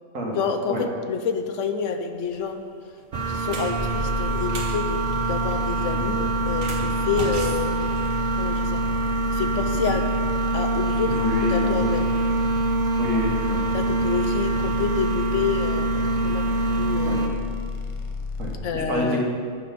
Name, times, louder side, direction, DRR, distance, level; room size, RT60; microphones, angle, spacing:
voice 1, 0.4-2.6 3.3-7.9 8.4-8.8 9.3-10.0 10.5-11.1 11.5-12.1 13.1-13.2 13.7-16.5 16.7-17.4 18.6-19.2, left 6 dB, 75° left, 7 dB, 1.0 m, -28 dB
sound 1, 2.2-2.5 3.0-4.8 6.5-8.5, right 2 dB, 65° right, 1.5 m, -35 dB
sound 2, 3.1-17.3, right 3 dB, 40° right, 0.8 m, -25 dB
sound 3, 3.8-18.5, left 4 dB, 35° left, 0.6 m, -32 dB
voice 2, 11.2-11.9 13.0-13.6 17.1-17.2 18.4-19.2, equal, 85° right, -2 dB, 1.9 m, -28 dB
9.3 x 6.1 x 5.2 m, 2.2 s
omnidirectional pair, 1.3 m